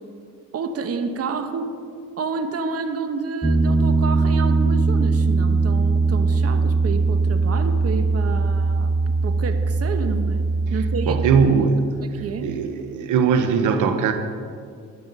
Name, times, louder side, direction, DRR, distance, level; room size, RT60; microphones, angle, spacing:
voice 1, 0.5-1.8 2.2-8.9 9.2-10.4 10.7-11.3 12.0-12.5, right 4 dB, 50° right, 8 dB, 1.1 m, -29 dB
Piano, 3.4-11.5, right 3 dB, 5° right, 0.8 m, -20 dB
voice 2, 11.1-11.8 12.4-14.1, right 6 dB, 80° right, 7 dB, 1.0 m, -19 dB
13.5 x 11.0 x 5.5 m, 2.2 s
cardioid pair, 90°, 30 cm